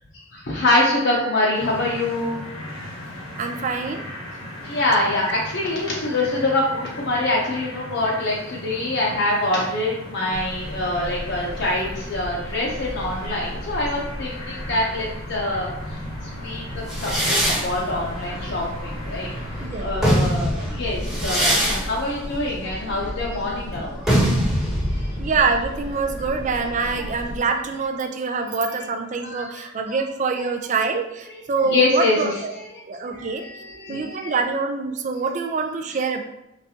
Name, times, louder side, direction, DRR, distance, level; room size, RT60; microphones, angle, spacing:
voice 1, 0.3-2.4 4.6-15.7 16.4-19.3 19.8-24.0 24.9-25.1 29.2-30.0 31.7-32.3 33.0-34.3, left 2 dB, 60° left, -3 dB, 0.7 m, -25 dB
sound 1, 1.5-19.7, left 1 dB, 85° left, 1.1 m, -37 dB
voice 2, 3.4-4.0 19.6-20.1 25.2-32.5 32.9-33.4 33.9-36.2, right 4 dB, 40° right, 5 dB, 0.4 m, -25 dB
sound 2, 10.3-27.4, equal, 20° left, 0.9 m, -35 dB
sound 3, 16.9-19.4 19.8-27.3, equal, 5° right, 1.1 m, -24 dB
4.1 x 3.3 x 2.7 m, 0.88 s
head